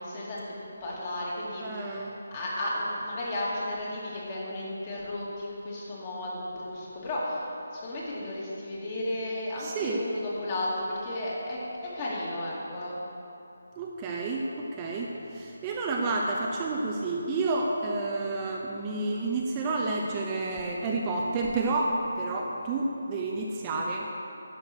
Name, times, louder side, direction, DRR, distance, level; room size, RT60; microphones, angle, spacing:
voice 1, 0.0-13.0, left 1 dB, 30° left, -6 dB, 2.6 m, -34 dB
voice 2, 1.6-2.2 9.6-10.0 13.8-24.1, right 3 dB, 20° right, -2 dB, 0.7 m, -30 dB
10.5 x 6.3 x 6.3 m, 2.9 s
figure-of-eight pair, 155°, 0 cm